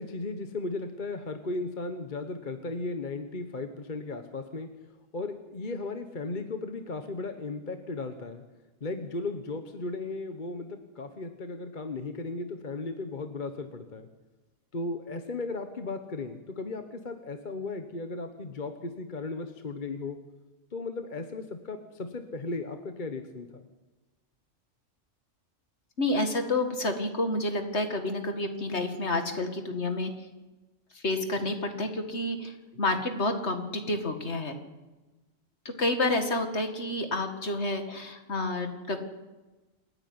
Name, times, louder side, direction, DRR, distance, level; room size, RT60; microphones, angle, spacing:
voice 1, 0.0-4.7 5.1-8.4 8.8-14.1 14.7-20.2 20.7-23.5, left 3 dB, 40° left, 7 dB, 1.3 m, -36 dB
voice 2, 26.0-30.1 30.9-34.6 35.8-39.0, left 2 dB, 55° left, 6 dB, 2.3 m, -29 dB
28.5 x 9.7 x 9.6 m, 1.2 s
omnidirectional pair, 1.3 m